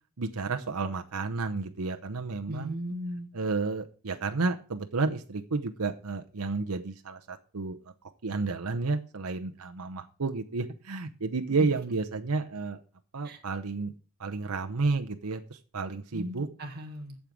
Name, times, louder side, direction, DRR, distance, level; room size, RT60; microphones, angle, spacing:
voice 1, 0.2-2.7 3.3-7.8 8.2-12.8 13.1-13.9 14.2-16.5, right 3 dB, 80° right, 6 dB, 0.8 m, -31 dB
voice 2, 2.5-3.3 11.6-11.7 13.2-13.4 16.1-17.2, equal, 45° right, 1 dB, 1.9 m, -37 dB
8.6 x 7.5 x 6.2 m, 0.38 s
head